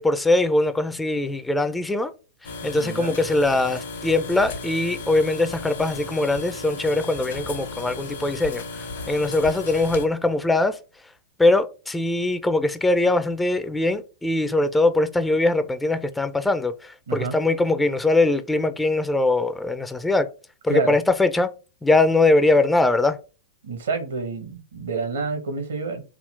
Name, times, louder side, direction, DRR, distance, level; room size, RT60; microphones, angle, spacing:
voice 1, 0.0-2.1 2.6-10.8 11.4-20.3 20.6-21.5 21.8-23.2, left 2 dB, 5° left, 0.3 m, -21 dB
sound 1, 2.4-10.1, left 3 dB, 70° left, 0.9 m, -35 dB
voice 2, 2.8-3.1 17.1-17.4 20.7-21.0 23.6-26.0, right 4 dB, 70° right, 0.9 m, -28 dB
3.6 x 2.4 x 3.2 m
figure-of-eight pair, 100°, 0 cm